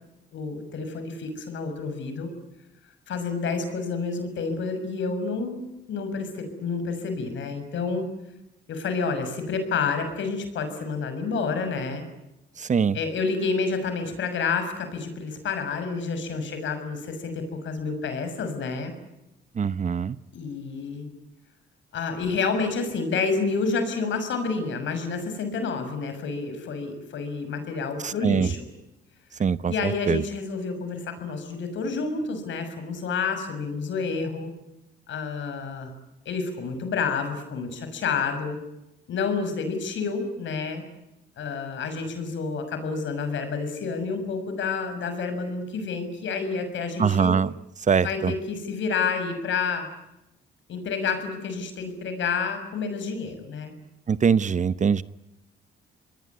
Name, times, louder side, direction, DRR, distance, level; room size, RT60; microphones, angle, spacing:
voice 1, 0.3-2.3 3.1-8.0 8.7-12.0 12.9-18.9 20.3-21.1 21.9-28.6 29.7-34.5 35.1-35.9 36.2-38.6 39.1-40.8 41.4-47.3 48.0-49.9 50.7-53.7, left 4 dB, 70° left, 8 dB, 6.5 m, -29 dB
voice 2, 12.6-13.0 19.6-20.2 28.0-28.5 29.4-30.2 47.0-47.5 47.9-48.3 54.1-55.0, right 6 dB, 40° right, 16 dB, 0.9 m, -23 dB
27.5 x 21.0 x 9.6 m, 0.91 s
cardioid pair, 90°, 20 cm